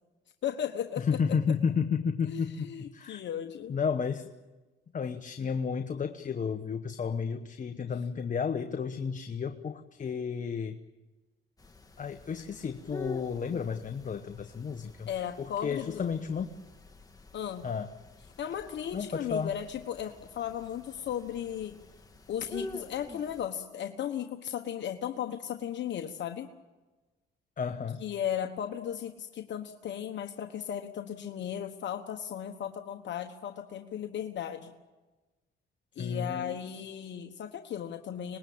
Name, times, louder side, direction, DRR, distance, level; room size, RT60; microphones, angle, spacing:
voice 1, 0.4-1.4 2.2-3.8 15.1-16.0 17.3-17.7 18.4-21.8 22.3-26.5 28.0-34.7 35.9-38.4, left 9 dB, 65° left, 5 dB, 1.3 m, -36 dB
voice 2, 1.0-3.2 3.7-4.3 4.9-10.8 12.0-15.1 15.4-16.6 17.6-17.9 18.9-19.5 27.6-28.0 36.0-36.6, left 6 dB, 40° left, 7 dB, 1.2 m, -32 dB
sound 1, 11.6-23.5, left 2 dB, 20° left, 2.1 m, -48 dB
25.0 x 20.5 x 8.7 m, 1.2 s
cardioid pair, 90°, 20 cm